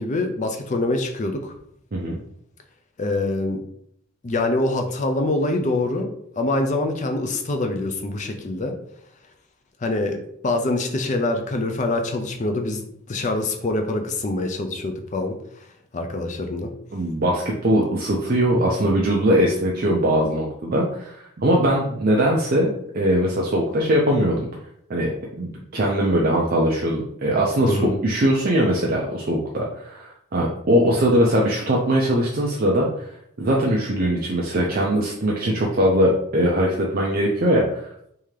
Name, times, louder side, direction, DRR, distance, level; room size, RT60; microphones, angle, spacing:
voice 1, 0.0-1.5 3.0-3.6 4.2-6.1 6.4-8.8 9.8-15.4 15.9-16.7 27.6-28.0, left 2 dB, 35° left, 5 dB, 0.4 m, -25 dB
voice 2, 16.9-24.5 24.9-33.1 33.4-37.9, equal, 40° right, -2 dB, 0.5 m, -21 dB
3.6 x 2.8 x 3.2 m, 0.71 s
head